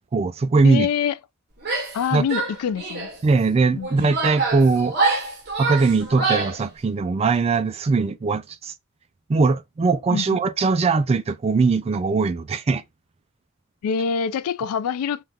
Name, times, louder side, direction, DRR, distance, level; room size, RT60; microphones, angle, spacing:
voice 1, 0.1-0.9 2.1-2.3 3.2-5.0 5.6-8.7 9.3-12.8, right 4 dB, 30° right, 0.3 m, -20 dB
voice 2, 0.6-1.1 1.9-3.1 3.7-4.1 10.1-10.4 13.8-15.2, left 7 dB, 75° left, 0.3 m, -25 dB
Female speech woman speaking / Yell, 1.6-2.0 2.3-3.2 3.8-6.6, right 3 dB, 50° right, 1.0 m, -25 dB
3.5 x 2.3 x 2.7 m
head